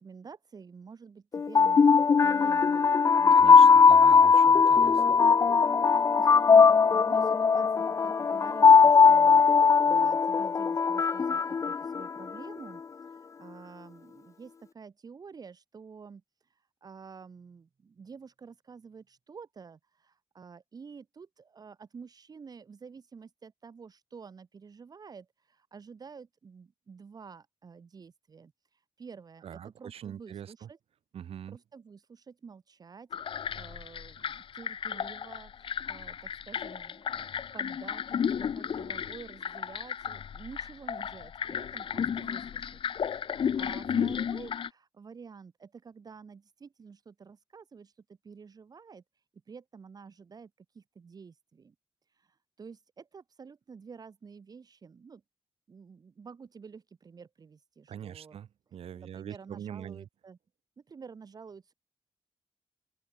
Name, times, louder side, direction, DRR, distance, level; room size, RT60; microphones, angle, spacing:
voice 1, 0.0-3.8 5.8-30.8 31.5-42.7 43.1-51.7 52.1-55.2 55.7-58.4 58.9-60.4 60.8-61.7, right 5 dB, 40° right, 4.6 m, -50 dB
sound 1, 1.3-12.4, left 5 dB, 30° left, 0.4 m, -20 dB
voice 2, 3.3-5.0 29.4-30.7 31.1-31.6 43.9-44.1 57.9-60.1, right 9 dB, 90° right, 4.9 m, -43 dB
sound 2, 33.1-44.7, left 8 dB, 65° left, 4.4 m, -34 dB
open air
wide cardioid pair, 145°, 10 cm